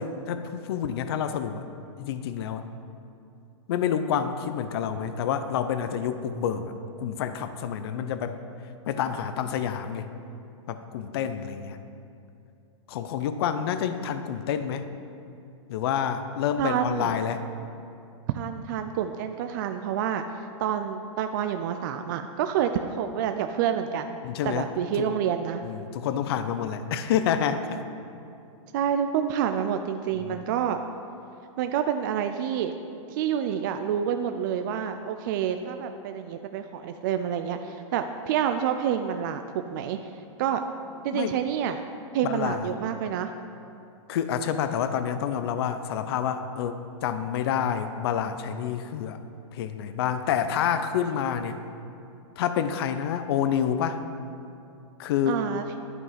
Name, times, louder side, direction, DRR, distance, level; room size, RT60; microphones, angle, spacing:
voice 1, 0.0-1.6 2.0-2.6 3.7-6.7 7.0-8.4 8.9-10.1 10.7-11.8 12.9-14.9 15.7-17.4 24.2-24.7 25.0-25.1 25.6-27.8 30.2-30.4 41.1-41.4 42.2-42.7 44.1-49.2 49.5-51.6 52.4-54.0 55.0-55.5, left 8 dB, 50° left, 10 dB, 0.6 m, -28 dB
voice 2, 16.6-17.2 18.3-20.2 20.6-24.2 24.4-25.6 28.7-30.8 31.6-32.7 33.1-39.4 39.7-40.0 40.4-40.6 41.0-41.8 42.1-43.3 55.3-55.6, right 9 dB, 40° right, 7 dB, 0.4 m, -28 dB
11.0 x 5.4 x 5.7 m, 2.7 s
hypercardioid pair, 160°, 17 cm